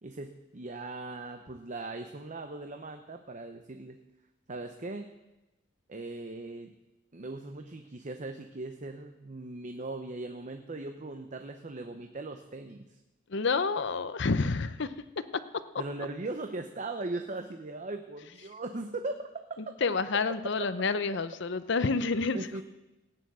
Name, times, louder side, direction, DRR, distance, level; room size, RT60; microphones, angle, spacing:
voice 1, 0.0-4.0 4.5-5.1 5.9-6.7 7.1-12.9 15.8-19.3 19.7-19.8 22.3-22.6, right 2 dB, 40° right, 6 dB, 0.7 m, -39 dB
voice 2, 13.3-14.9 15.3-15.4 19.6-22.6, left 4 dB, 60° left, 13 dB, 0.7 m, -29 dB
16.5 x 9.5 x 6.2 m, 1.0 s
head